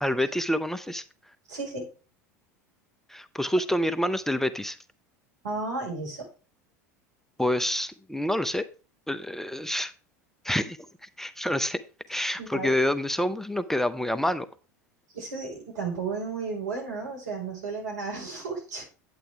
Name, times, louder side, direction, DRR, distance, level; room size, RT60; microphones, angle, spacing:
voice 1, 0.0-1.0 3.1-4.8 7.4-8.7 9.1-9.9 10.4-11.8 12.1-14.5, left 1 dB, 5° left, 12 dB, 0.7 m, -27 dB
voice 2, 1.5-1.9 5.4-6.3 12.4-12.8 15.1-18.8, right 4 dB, 80° right, 0 dB, 4.6 m, -33 dB
9.2 x 8.5 x 3.4 m, 0.34 s
hypercardioid pair, 80°, 9 cm